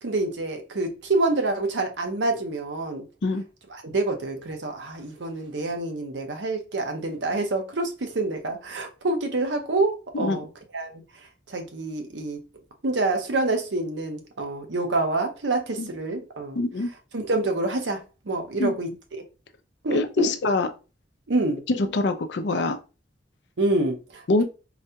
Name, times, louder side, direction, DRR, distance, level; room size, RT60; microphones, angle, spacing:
voice 1, 0.0-3.0 3.8-10.5 10.7-10.9 11.5-12.4 12.8-16.6 17.1-19.2 19.8-20.3 21.3-21.6 23.6-24.4, right 2 dB, 80° right, 0.8 m, -27 dB
voice 2, 16.6-16.9 18.6-18.7 19.9-20.7 21.7-22.8 24.3-24.4, left 2 dB, 70° left, 0.5 m, -24 dB
4.0 x 2.2 x 2.8 m
head